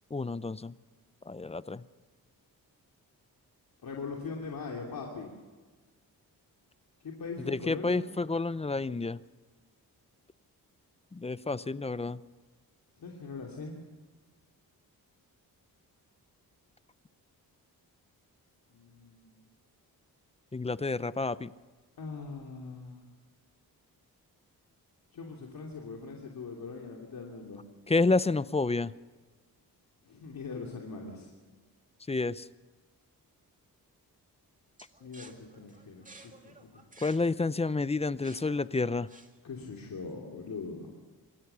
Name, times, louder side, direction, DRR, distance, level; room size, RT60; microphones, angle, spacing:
voice 1, 0.1-0.7 1.3-1.8 7.5-9.2 11.1-12.2 20.5-21.5 27.9-28.9 32.1-32.5 37.0-39.1, left 3 dB, 15° left, 17 dB, 0.6 m, -29 dB
voice 2, 3.8-5.3 7.0-8.1 13.0-13.8 18.7-19.4 22.0-23.1 25.1-27.6 30.0-31.3 35.0-36.8 39.4-40.9, left 4 dB, 65° left, -1 dB, 2.9 m, -41 dB
sound 1, 34.8-39.6, right 3 dB, 20° right, 2.2 m, -54 dB
26.0 x 15.0 x 6.9 m, 1.4 s
cardioid pair, 85°, 37 cm